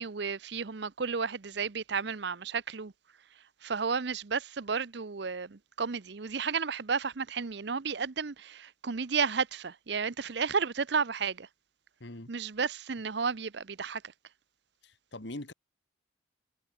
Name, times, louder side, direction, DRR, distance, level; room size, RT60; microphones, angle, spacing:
voice 1, 0.0-2.9 3.6-11.5 12.3-14.0, right 5 dB, 60° right, 0.7 m, -32 dB
voice 2, 12.0-12.3 14.8-15.5, left 1 dB, 60° left, 2.0 m, -42 dB
head